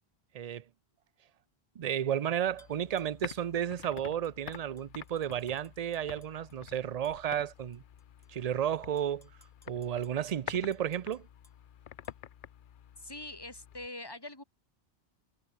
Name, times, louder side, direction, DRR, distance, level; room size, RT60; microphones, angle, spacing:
voice 1, 1.8-7.8 8.3-9.3 9.7-11.3, right 9 dB, 50° right, 0.5 m, -32 dB
sound 1, 2.5-13.9, left 10 dB, 55° left, 0.7 m, -49 dB
Tap / Glass, 2.6-3.5 4.0-6.6 7.0-7.2 7.7-8.3 8.8-11.6 12.0-12.2, left 2 dB, 35° left, 2.7 m, -65 dB
voice 2, 13.0-14.4, left 2 dB, 20° left, 3.5 m, -43 dB
omnidirectional pair, 1.1 m